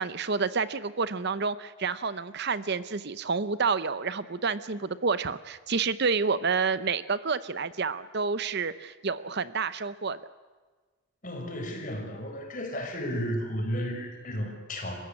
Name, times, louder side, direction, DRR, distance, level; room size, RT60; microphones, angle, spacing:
voice 1, 0.0-10.2, right 5 dB, 50° right, 15 dB, 0.7 m, -29 dB
voice 2, 11.2-15.0, equal, 35° left, 4 dB, 5.0 m, -33 dB
27.5 x 16.0 x 9.9 m, 1.4 s
head